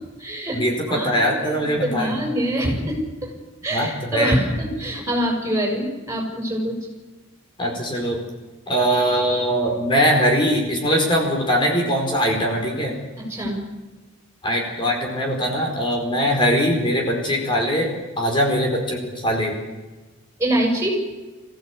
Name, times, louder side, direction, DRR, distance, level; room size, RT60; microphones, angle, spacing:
voice 1, 0.0-0.6 0.9-3.3 3.6-6.8 13.3-13.6 20.4-21.0, right 1 dB, 15° right, 0 dB, 6.7 m, -25 dB
voice 2, 0.5-2.2 3.7-4.4 7.6-8.2 8.7-13.0 14.4-17.9 18.2-19.5, equal, 25° left, 0 dB, 4.5 m, -21 dB
25.5 x 16.5 x 8.3 m, 1.2 s
head